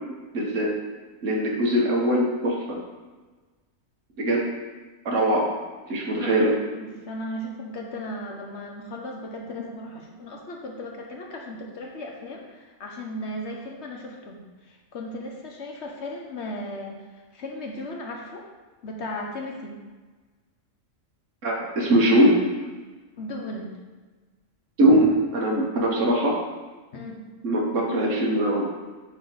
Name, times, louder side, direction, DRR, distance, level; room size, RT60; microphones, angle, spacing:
voice 1, 0.3-0.7 1.2-2.8 4.2-4.5 5.0-5.5 5.9-6.5 21.4-22.4 24.8-26.3 27.4-28.7, right 1 dB, 65° right, -2 dB, 1.5 m, -21 dB
voice 2, 6.8-18.4 18.8-19.8 23.2-23.8 26.9-27.2, left 1 dB, 60° left, 0 dB, 1.1 m, -36 dB
9.1 x 3.1 x 3.9 m, 1.3 s
omnidirectional pair, 1.4 m